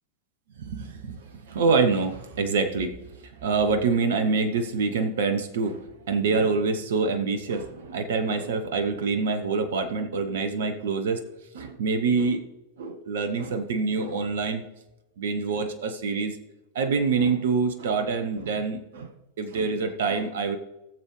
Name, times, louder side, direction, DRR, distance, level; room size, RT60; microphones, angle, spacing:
voice 1, 0.7-11.3 11.5-12.4 12.8-14.6 15.2-16.4 16.7-19.1 19.4-20.6, right 4 dB, 60° right, 8 dB, 1.0 m, -26 dB
18.0 x 7.3 x 3.2 m, 0.96 s
figure-of-eight pair, 90°, 0 cm